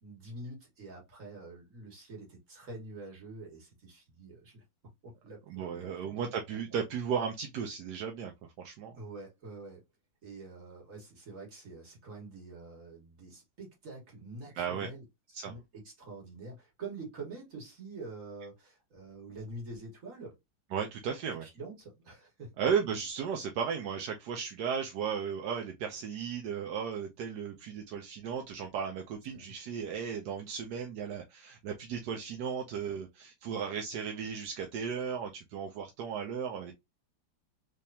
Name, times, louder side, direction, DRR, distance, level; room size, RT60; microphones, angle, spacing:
voice 1, 0.0-4.6 5.0-5.9 9.0-9.8 10.2-15.0 15.3-20.4 21.4-22.7 29.3-29.5, right 3 dB, 45° right, 1.9 m, -46 dB
voice 2, 5.5-8.3 8.6-8.9 14.5-14.9 15.3-15.5 20.7-21.5 22.6-36.7, right 7 dB, 70° right, 1.1 m, -35 dB
3.4 x 3.3 x 2.7 m
omnidirectional pair, 2.1 m